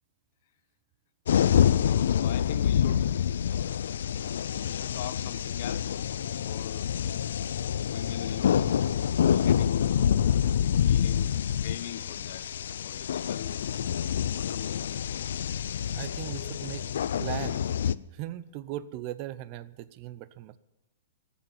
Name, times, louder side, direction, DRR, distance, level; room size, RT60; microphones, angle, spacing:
sound 1, 1.3-17.9, left 9 dB, 75° left, 0.4 m, -27 dB
voice 1, 1.8-3.1 4.6-6.0 6.4-6.9 7.8-8.8 9.1-10.3 10.9-11.4 11.6-12.5 12.8-13.7 14.3-15.0 16.2-16.8, left 12 dB, 55° left, 0.9 m, -41 dB
voice 2, 15.9-16.8 17.2-17.7 18.1-20.6, right 14 dB, 40° right, 0.7 m, -38 dB
14.5 x 7.2 x 9.4 m
hypercardioid pair, 150°, 0 cm